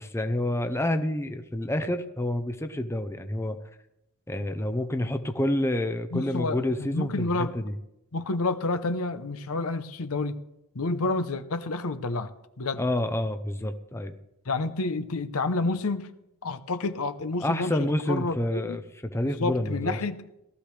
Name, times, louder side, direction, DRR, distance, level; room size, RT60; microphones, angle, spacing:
voice 1, 0.0-3.6 4.3-7.7 12.8-14.2 17.4-18.8 19.1-20.0, left 1 dB, 10° left, 8 dB, 0.7 m, -28 dB
voice 2, 6.1-7.6 8.1-10.4 10.7-12.3 12.6-12.8 14.5-16.1 16.4-18.8 19.2-20.2, left 3 dB, 70° left, 10 dB, 0.8 m, -29 dB
18.5 x 13.0 x 3.4 m, 0.86 s
head